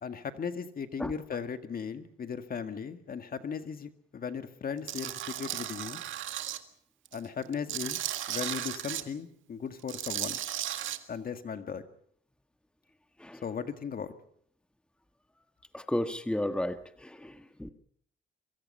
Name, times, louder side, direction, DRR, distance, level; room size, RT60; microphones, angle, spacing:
voice 1, 0.0-6.0 7.1-8.0 8.3-10.4 11.1-11.8 13.4-14.1, left 6 dB, 45° left, 9 dB, 2.0 m, -37 dB
Tools, 4.9-6.6 7.1-9.0 9.8-11.0, right 12 dB, 80° right, 1.7 m, -35 dB
voice 2, 15.7-17.7, left 1 dB, 5° left, 9 dB, 1.5 m, -33 dB
24.0 x 23.5 x 5.5 m, 0.63 s
cardioid pair, 90°, 20 cm